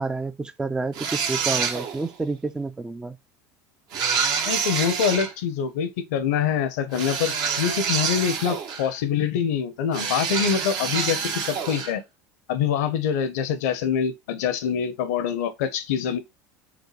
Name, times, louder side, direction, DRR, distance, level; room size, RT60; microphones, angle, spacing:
voice 1, 0.0-3.2, right 3 dB, 10° right, 0.4 m, -29 dB
sound 1, 0.9-2.1 3.9-5.3 6.9-9.0 9.9-11.9, right 6 dB, 55° right, 1.0 m, -27 dB
voice 2, 4.4-12.0 12.5-16.2, left 8 dB, 80° left, 0.8 m, -25 dB
5.9 x 2.2 x 3.0 m
supercardioid pair, 95°, 8 cm